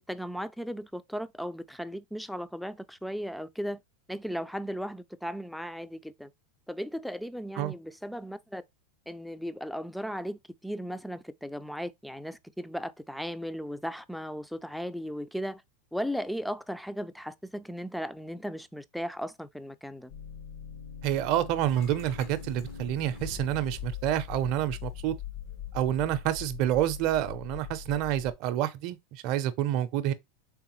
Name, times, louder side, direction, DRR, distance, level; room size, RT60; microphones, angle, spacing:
voice 1, 0.0-3.8 4.1-6.3 6.7-8.6 9.1-15.6 15.9-20.1, equal, ahead, 0.3 m, -36 dB
sound 1, 20.1-28.3, left 9 dB, 75° left, 1.5 m, -41 dB
voice 2, 21.0-25.1 25.7-30.1, right 12 dB, 55° right, 0.6 m, -28 dB
sound 2, 21.7-25.1 25.4-25.7, left 6 dB, 55° left, 0.6 m, -47 dB
3.6 x 3.4 x 3.0 m
hypercardioid pair, 110°, 0 cm